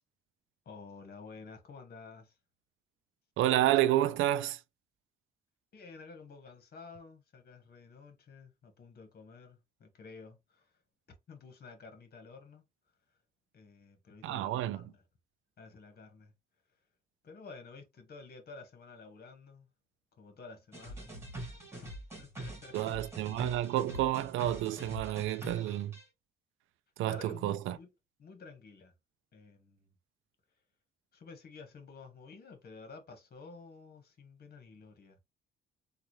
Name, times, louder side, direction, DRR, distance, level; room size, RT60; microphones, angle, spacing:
voice 1, 0.6-2.4 5.7-10.8 11.3-12.6 13.5-15.0 15.6-16.3 17.2-19.7 20.2-21.2 21.8-23.1 27.1-27.9 28.2-28.9 29.3-29.9 31.1-35.2, left 4 dB, 50° left, 1.4 m, -51 dB
voice 2, 3.4-4.6 14.2-14.8 22.7-25.9 27.0-27.8, right 13 dB, 85° right, 0.4 m, -30 dB
sound 1, 20.7-26.0, right 1 dB, 10° right, 2.0 m, -44 dB
3.9 x 2.5 x 3.1 m
cardioid pair, 90°, 20 cm